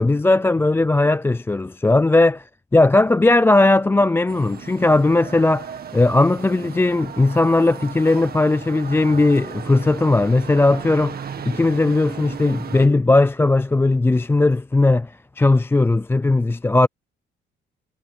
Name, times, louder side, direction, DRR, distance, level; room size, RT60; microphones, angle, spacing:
voice 1, 0.0-2.4 2.7-16.9, left 2 dB, 10° left, 0.4 m, -18 dB
sound 1, 4.3-12.9, right 7 dB, 50° right, 2.0 m, -36 dB
cardioid pair, 90°, 20 cm